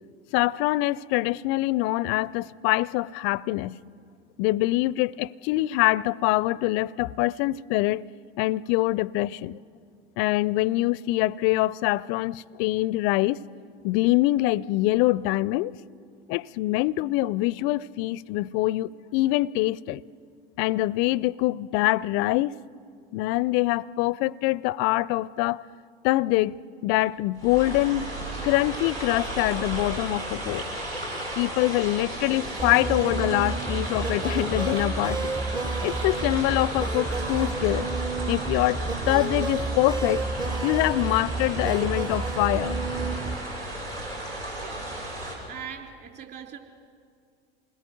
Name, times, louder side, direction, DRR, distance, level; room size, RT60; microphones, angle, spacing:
voice 1, 0.3-3.8 4.4-8.0 8.4-9.6 10.2-13.4 13.8-15.7 16.3-20.0 20.6-22.5 23.1-25.6 26.0-28.1 28.4-30.7 31.4-35.3 35.8-37.9 38.3-40.2 40.6-42.8, left 18 dB, 45° left, 0.5 m, -24 dB
sound 1, 27.0-27.1 27.4-45.3, right 1 dB, 90° right, 7.5 m, -34 dB
sound 2, 32.6-43.4, right 3 dB, 15° right, 0.9 m, -30 dB
voice 2, 44.6-45.0 45.5-46.6, right 8 dB, 35° right, 3.5 m, -41 dB
28.0 x 20.5 x 7.8 m
figure-of-eight pair, 80°, 29 cm